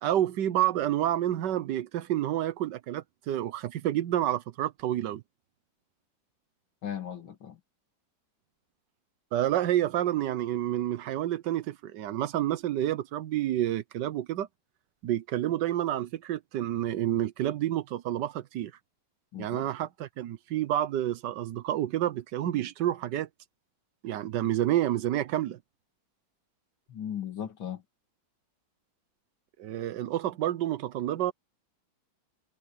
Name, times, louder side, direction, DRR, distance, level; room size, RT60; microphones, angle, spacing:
voice 1, 0.0-5.2 9.3-14.5 15.0-18.7 19.4-23.3 24.0-25.6 29.6-31.3, right 12 dB, 70° right, 1.4 m, -29 dB
voice 2, 6.8-7.6 19.3-19.7 26.9-27.8, left 9 dB, 85° left, 3.1 m, -37 dB
omnidirectional pair, 2.1 m